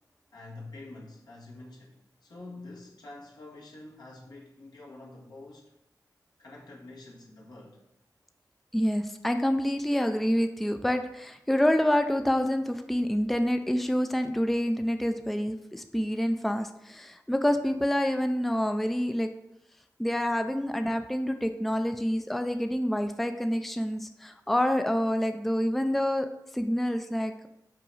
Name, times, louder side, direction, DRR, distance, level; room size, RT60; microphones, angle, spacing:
voice 1, 0.3-5.7 6.4-7.8, left 2 dB, 75° left, -3 dB, 1.7 m, -47 dB
voice 2, 8.7-19.3 20.0-27.5, equal, ahead, 7 dB, 0.4 m, -27 dB
5.6 x 4.7 x 4.0 m, 0.85 s
cardioid pair, 65°, 7 cm